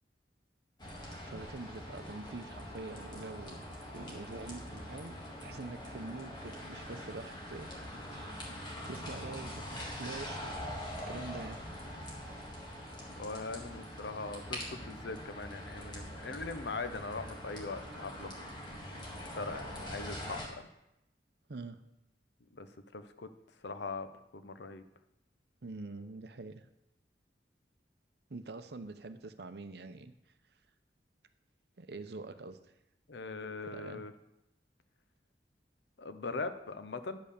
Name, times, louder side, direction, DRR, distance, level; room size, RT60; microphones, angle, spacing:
sound 1, 0.8-20.5, equal, 25° left, 1.9 m, -44 dB
voice 1, 0.9-3.7 3.9-7.7 8.1-8.4 8.8-10.5 11.1-11.6 21.5-21.8 25.6-26.6 28.3-30.1 31.8-32.6 33.7-34.0, right 3 dB, 65° right, 10 dB, 0.7 m, -45 dB
voice 2, 13.2-18.4 18.8-20.6 22.5-22.7 22.9-23.3 23.6-24.1 24.3-24.8 33.1-34.1 36.0-37.2, left 3 dB, 80° left, 10 dB, 0.7 m, -41 dB
10.0 x 5.5 x 6.6 m, 0.88 s
head